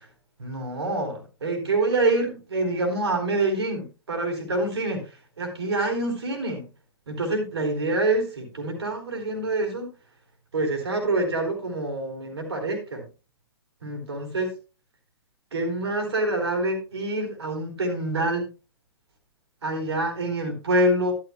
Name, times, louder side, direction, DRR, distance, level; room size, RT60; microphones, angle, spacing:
voice 1, 0.4-5.0 5.4-6.7 7.1-9.9 10.5-13.0 13.8-14.5 15.5-18.5 19.6-21.1, right 2 dB, 75° right, 4 dB, 3.8 m, -26 dB
12.5 x 12.0 x 2.2 m, 0.31 s
figure-of-eight pair, 115°, 14 cm